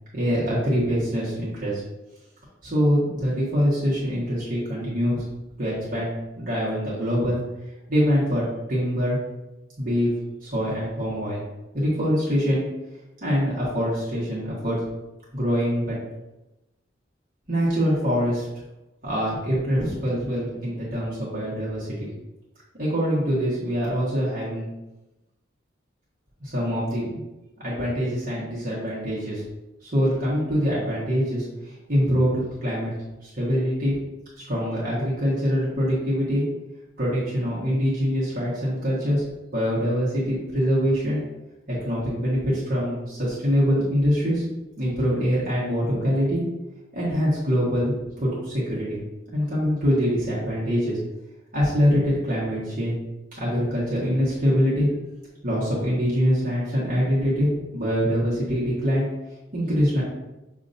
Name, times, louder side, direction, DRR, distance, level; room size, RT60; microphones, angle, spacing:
voice 1, 0.1-1.8 2.6-5.2 5.6-7.4 7.9-9.2 9.8-10.1 10.4-11.4 11.7-12.6 13.2-14.8 15.3-16.0 17.5-18.5 19.0-22.1 22.8-24.7 26.4-27.2 27.6-29.4 29.8-32.9 33.2-33.9 34.5-36.4 37.0-39.2 39.5-41.2 41.7-44.4 44.8-46.4 46.9-49.0 49.3-51.0 51.5-53.0 53.4-54.9 55.4-59.1 59.5-60.0, equal, 45° right, -8 dB, 1.3 m, -24 dB
6.5 x 2.8 x 2.6 m, 0.99 s
head